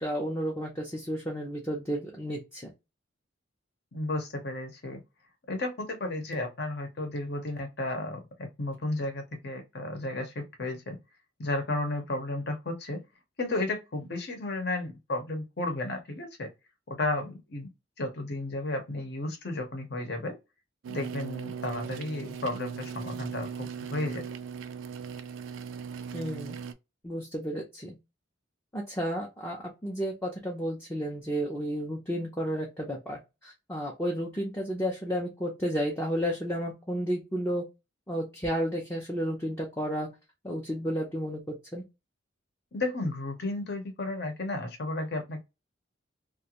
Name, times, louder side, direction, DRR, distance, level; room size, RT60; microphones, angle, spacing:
voice 1, 0.0-2.7 26.1-26.6 27.0-28.0 28.7-37.6 38.1-40.1 40.4-41.8, equal, 10° left, 0.5 m, -32 dB
voice 2, 3.9-5.0 5.5-11.0 11.4-13.0 13.4-16.5 16.9-17.7 18.0-20.4 20.9-24.3 42.7-45.4, left 2 dB, 55° left, 0.8 m, -33 dB
sound 1, 20.8-26.7, right 6 dB, 80° right, 0.3 m, -39 dB
2.4 x 2.2 x 2.8 m
head